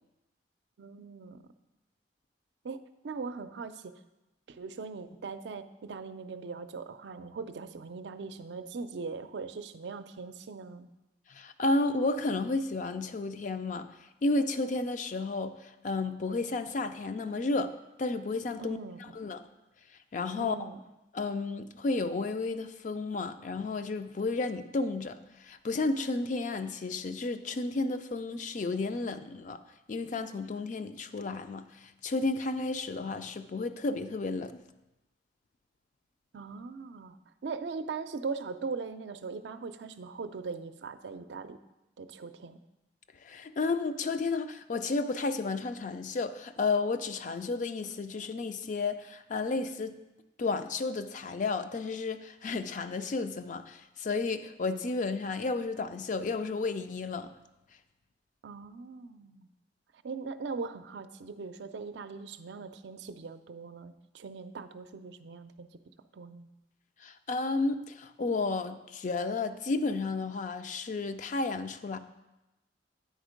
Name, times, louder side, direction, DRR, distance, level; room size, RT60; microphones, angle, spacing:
voice 1, 0.8-1.4 2.6-3.9 4.5-10.9 18.6-19.0 20.4-20.8 36.3-37.2 37.4-41.6 42.0-42.6 58.4-59.5 60.0-65.7 66.1-66.5, right 4 dB, 75° right, 0.4 m, -40 dB
voice 2, 11.3-13.9 14.2-18.8 19.1-19.4 20.1-20.6 21.1-29.6 29.9-34.6 43.2-50.0 50.4-57.3 67.0-72.0, left 3 dB, 45° left, 0.4 m, -32 dB
9.2 x 4.4 x 5.1 m
head